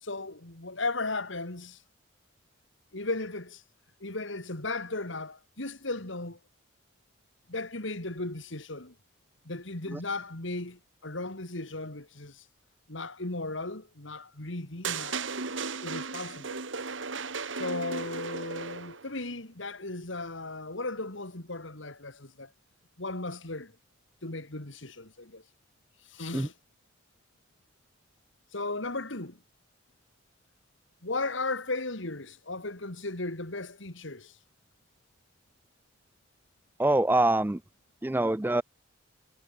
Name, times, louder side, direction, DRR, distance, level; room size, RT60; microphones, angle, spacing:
voice 1, 0.0-1.8 2.9-3.6 4.0-6.4 7.5-8.9 9.4-12.4 12.9-15.2 15.8-16.6 17.5-22.5 23.0-23.7 24.2-25.4 26.1-26.5 28.5-29.4 31.0-34.3, left 2 dB, 75° left, 2.8 m, -36 dB
sound 1, 14.8-19.1, right 5 dB, 75° right, 2.1 m, -35 dB
voice 2, 36.8-37.6 38.0-38.6, right 2 dB, 10° right, 0.3 m, -24 dB
head